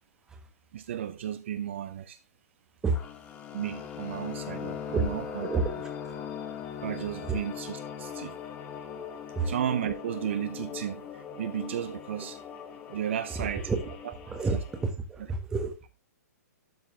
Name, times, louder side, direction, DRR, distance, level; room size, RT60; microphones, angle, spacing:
voice 1, 0.7-2.2 3.5-5.5 6.8-8.4 9.4-12.4 12.9-13.7 14.0-14.1, right 10 dB, 45° right, 0.6 m, -34 dB
sound 1, 2.9-14.9, left 8 dB, 15° left, 0.9 m, -40 dB
voice 2, 4.9-5.7 6.0-6.1 7.2-7.4 9.3-9.5 13.4-13.9 14.3-15.9, right 3 dB, 5° right, 1.2 m, -30 dB
12.0 x 4.5 x 3.2 m
hypercardioid pair, 170°, 9 cm